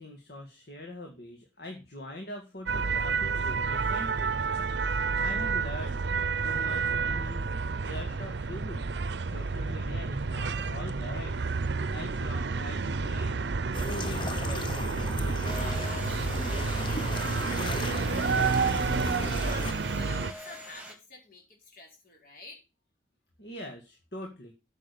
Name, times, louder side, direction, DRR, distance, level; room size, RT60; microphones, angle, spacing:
voice 1, 0.0-4.4 5.0-8.8 9.2-11.6 11.9-13.3 13.6-14.9 23.4-24.5, left 1 dB, 65° left, 2 dB, 2.0 m, -43 dB
sound 1, 2.7-20.3, right 4 dB, 75° right, 0.6 m, -30 dB
sound 2, 13.7-19.7, left 1 dB, 25° left, 0.9 m, -35 dB
voice 2, 15.4-18.0 18.4-22.6, left 2 dB, 50° left, 0 dB, 4.7 m, -48 dB
sound 3, 15.4-20.9, equal, 10° right, 2.5 m, -43 dB
8.9 x 6.4 x 6.8 m, 0.29 s
head